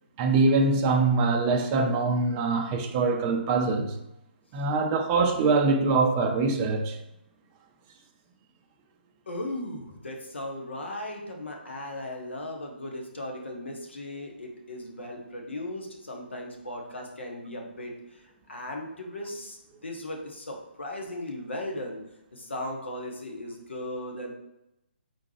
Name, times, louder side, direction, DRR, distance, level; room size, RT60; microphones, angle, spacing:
voice 1, 0.2-4.0 4.5-7.0, right 3 dB, 20° right, 0.4 m, -23 dB
voice 2, 9.3-22.0 22.3-24.3, left 1 dB, 70° left, 1.1 m, -37 dB
4.4 x 3.6 x 3.2 m
figure-of-eight pair, 135°, 6 cm